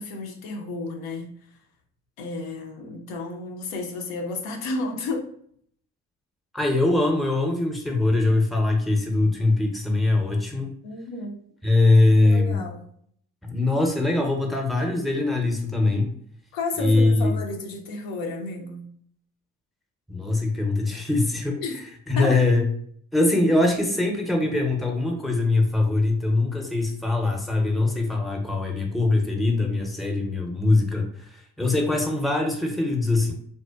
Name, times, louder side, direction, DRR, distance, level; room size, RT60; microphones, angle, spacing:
voice 1, 0.0-1.4 2.2-5.3 10.8-11.4 12.2-12.9 16.5-18.9 21.6-21.8 22.2-22.4, left 3 dB, 85° left, 0.6 m, -32 dB
voice 2, 6.5-10.7 11.6-12.6 13.4-16.1 16.8-17.4 20.1-21.6 22.1-22.6 23.1-33.3, left 2 dB, ahead, 0.5 m, -22 dB
2.6 x 2.1 x 2.3 m
supercardioid pair, 60°, 35 cm